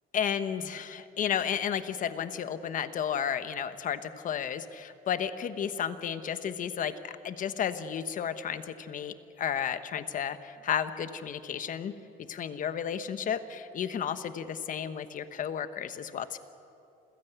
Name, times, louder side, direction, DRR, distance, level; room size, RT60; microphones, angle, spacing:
voice 1, 0.1-11.9 12.3-16.4, left 8 dB, 50° left, 11 dB, 1.2 m, -33 dB
27.0 x 16.0 x 8.2 m, 2.7 s
cardioid pair, 110°, 17 cm